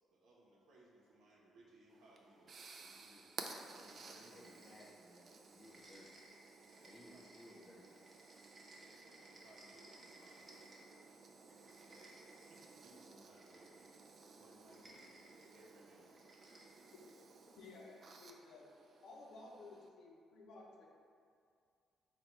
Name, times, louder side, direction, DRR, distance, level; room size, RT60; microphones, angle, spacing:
voice 1, 0.1-3.3 3.8-4.4 6.7-7.6 8.5-10.7 11.0-14.0 14.4-16.2, right 1 dB, 80° right, -5 dB, 0.8 m, -66 dB
sound 1, 1.9-19.9, right 4 dB, 50° right, 0.3 m, -56 dB
voice 2, 3.7-6.2 6.8-7.9, left 1 dB, 35° left, -3 dB, 0.8 m, -60 dB
sound 2, 3.9-5.2 5.5-11.1 11.5-12.7 13.3-14.0 14.6-15.5 16.2-17.2, right 1 dB, 25° right, 0.7 m, -62 dB
voice 3, 17.6-18.7 19.0-21.0, left 3 dB, 80° left, -2 dB, 0.7 m, -55 dB
4.0 x 2.2 x 4.5 m, 2.3 s
cardioid pair, 90°, 0 cm